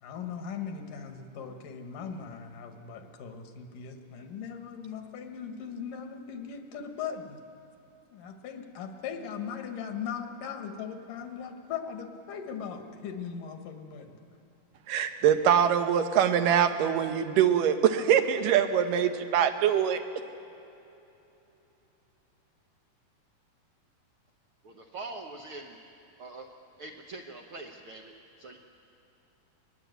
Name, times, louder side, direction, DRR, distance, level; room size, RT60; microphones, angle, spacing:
voice 1, 0.0-7.4 8.1-14.2, left 7 dB, 75° left, 5 dB, 2.9 m, -39 dB
voice 2, 14.9-20.0, right 9 dB, 80° right, 7 dB, 2.6 m, -23 dB
voice 3, 24.6-25.8 26.2-26.5 26.8-28.6, right 2 dB, 65° right, 1 dB, 1.3 m, -43 dB
20.5 x 20.0 x 8.1 m, 2.9 s
omnidirectional pair, 3.8 m